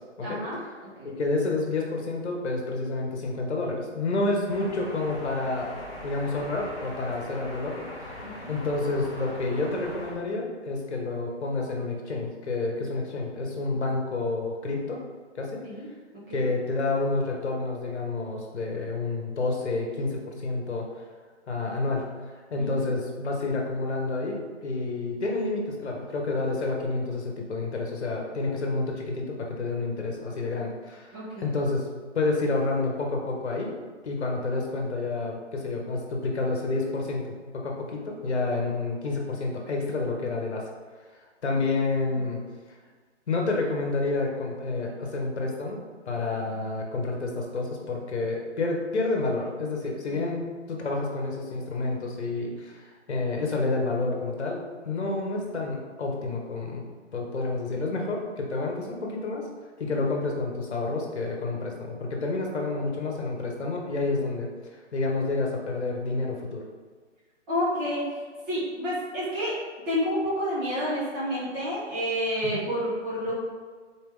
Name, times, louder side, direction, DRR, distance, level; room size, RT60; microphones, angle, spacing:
voice 1, 0.2-1.1 8.2-8.5 15.6-15.9 16.3-16.5 22.6-22.9 31.1-31.5 34.5-34.6 50.1-50.3 59.8-59.9 67.5-68.1 68.5-69.6 69.9-73.3, equal, 20° right, -9 dB, 1.3 m, -30 dB
voice 2, 1.0-5.8 6.0-8.1 8.5-15.0 15.3-15.6 16.3-20.9 21.5-22.0 22.3-31.9 32.1-33.7 34.0-40.6 41.4-42.4 43.3-45.8 46.1-50.4 50.7-56.8 57.1-59.5 59.8-64.5 64.9-66.6 72.4-72.6, left 3 dB, 60° left, 0 dB, 1.2 m, -29 dB
sound 1, 4.5-10.1, left 1 dB, 20° left, 0.6 m, -41 dB
4.1 x 2.8 x 3.7 m, 1.5 s
figure-of-eight pair, 140°, 37 cm